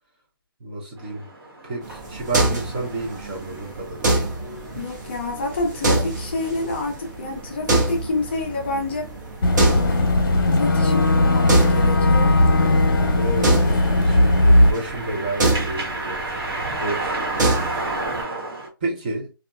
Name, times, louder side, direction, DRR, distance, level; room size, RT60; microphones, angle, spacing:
voice 1, 0.6-1.3 1.6-4.3 13.1-16.4 16.7-17.5 18.8-19.3, right 2 dB, 20° right, 0.6 m, -31 dB
sound 1, 1.0-18.7, right 2 dB, 80° right, 1.3 m, -35 dB
sound 2, 1.8-18.2, right 2 dB, 50° right, 1.0 m, -27 dB
voice 2, 4.8-9.1 9.6-10.1 10.5-12.4, left 3 dB, 25° left, 0.6 m, -28 dB
Boat Water vehicle / Engine, 9.4-14.7, left 1 dB, 55° left, 0.8 m, -17 dB
2.7 x 2.4 x 2.3 m
hypercardioid pair, 165°, 13 cm